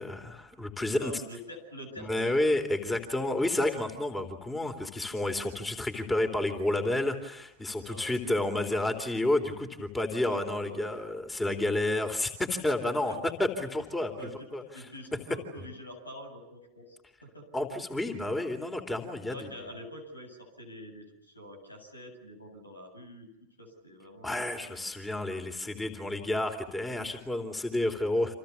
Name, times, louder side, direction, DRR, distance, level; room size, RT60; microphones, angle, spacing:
voice 1, 0.0-1.1 2.0-14.1 14.5-14.9 15.1-15.2 17.5-19.5 24.2-28.3, left 1 dB, 10° left, 7 dB, 3.5 m, -30 dB
voice 2, 0.8-2.3 7.7-8.1 10.1-11.0 13.1-13.3 14.2-17.0 17.2-17.5 19.3-23.3 23.6-24.8 26.0-26.2, equal, 80° left, 6 dB, 7.8 m, -46 dB
29.5 x 28.0 x 7.2 m, 0.79 s
figure-of-eight pair, 90°, 0 cm